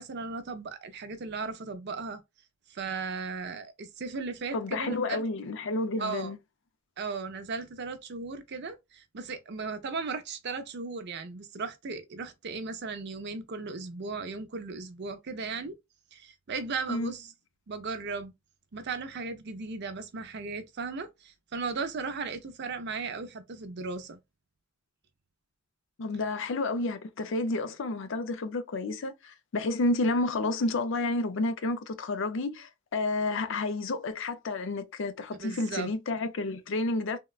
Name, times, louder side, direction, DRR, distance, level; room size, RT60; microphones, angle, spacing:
voice 1, 0.0-2.2 2.7-5.2 6.0-6.3 7.0-15.7 16.1-17.3 17.7-18.3 18.7-24.2 35.4-35.9, right 4 dB, 55° right, 0.6 m, -36 dB
voice 2, 4.5-6.4 16.9-17.1 26.0-37.2, left 2 dB, 65° left, 0.5 m, -30 dB
3.5 x 2.1 x 2.3 m
head